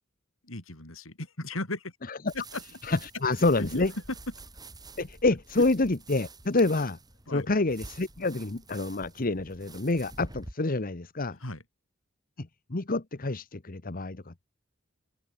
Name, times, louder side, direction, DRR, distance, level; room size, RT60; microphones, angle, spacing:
voice 1, 0.4-2.0 2.3-2.6 3.6-3.8 5.6-5.7 7.3-7.5 11.3-11.6, left 2 dB, 80° left, 5.7 m, -36 dB
sound 1, 2.3-10.5, right 2 dB, 20° right, 4.2 m, -47 dB
voice 2, 2.8-3.9 5.0-7.0 7.3-11.4 12.4-14.4, left 2 dB, 45° left, 1.2 m, -28 dB
head